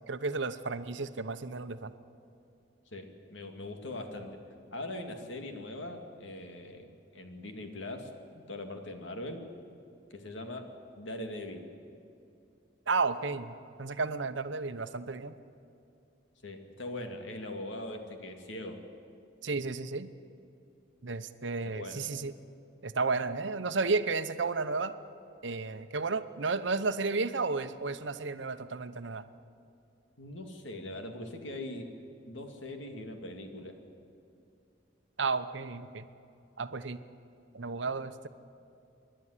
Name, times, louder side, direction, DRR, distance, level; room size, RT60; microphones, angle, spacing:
voice 1, 0.1-1.9 12.9-15.3 19.4-20.1 21.0-22.3 22.8-25.0 25.4-29.3 35.2-36.0 36.6-37.0 37.5-38.3, right 4 dB, 75° right, 11 dB, 0.9 m, -32 dB
voice 2, 2.9-4.4 4.7-8.1 8.5-9.5 10.1-11.7 16.4-18.8 21.6-22.0 30.2-31.9 32.3-33.8, left 1 dB, 80° left, 5 dB, 2.2 m, -41 dB
26.5 x 11.5 x 9.8 m, 2.6 s
head